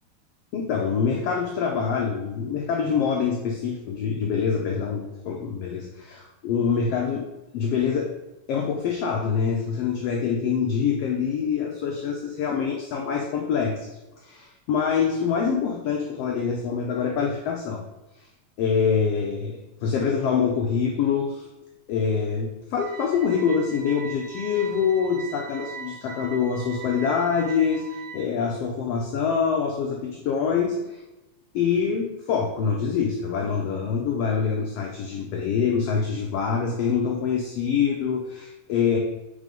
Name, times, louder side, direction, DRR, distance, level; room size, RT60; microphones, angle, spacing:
voice 1, 0.5-7.2 7.5-8.1 8.5-17.8 18.6-21.5 21.9-31.0 31.5-39.0, left 6 dB, 75° left, 1 dB, 1.4 m, -25 dB
sound 1, 22.8-28.3, right 6 dB, 85° right, 2.5 m, -40 dB
5.0 x 4.1 x 5.1 m, 1.0 s
omnidirectional pair, 3.4 m